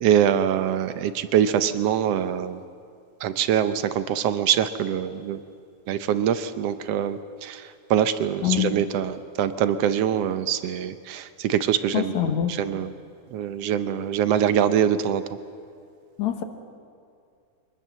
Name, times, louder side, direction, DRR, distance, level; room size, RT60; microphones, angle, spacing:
voice 1, 0.0-2.6 3.2-5.4 5.9-7.6 7.9-12.9 13.3-15.2, right 9 dB, 70° right, 12 dB, 1.6 m, -24 dB
voice 2, 11.9-12.5 16.2-16.4, left 11 dB, 70° left, 6 dB, 2.6 m, -24 dB
23.5 x 20.0 x 7.4 m, 2.4 s
omnidirectional pair, 3.4 m